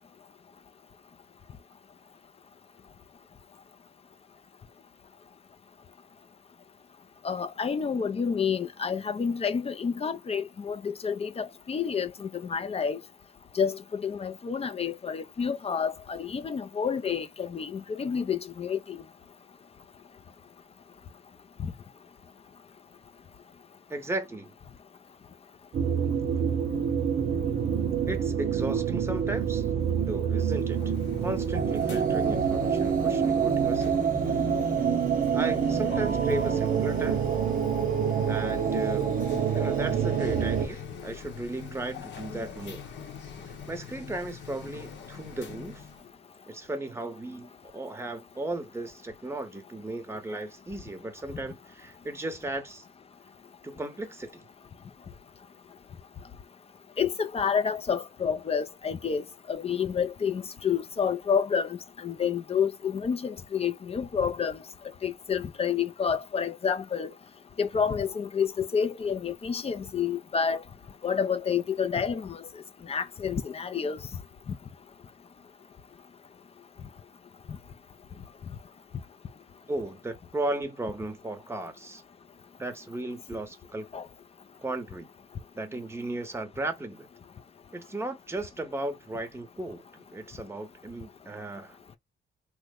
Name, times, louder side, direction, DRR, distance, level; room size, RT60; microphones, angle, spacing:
voice 1, 7.2-13.0 13.5-19.0 21.6-21.7 57.0-64.6 65.0-67.1 67.6-70.6 71.0-72.5 72.8-74.0 74.5-74.6 83.9-84.1, left 6 dB, 30° left, 0.5 m, -29 dB
voice 2, 23.9-24.5 28.1-29.7 30.0-30.8 31.2-34.1 35.3-37.2 38.3-39.2 39.5-42.9 43.4-45.9 46.5-52.9 53.6-54.5 79.7-82.0 82.6-83.9 84.6-85.1 85.5-87.1 87.7-92.0, right 2 dB, 15° right, 0.8 m, -35 dB
sound 1, 25.7-40.7, right 7 dB, 45° right, 0.6 m, -26 dB
sound 2, 30.5-46.1, left 6 dB, 65° left, 0.9 m, -42 dB
3.0 x 2.1 x 3.5 m
cardioid pair, 90°, 20 cm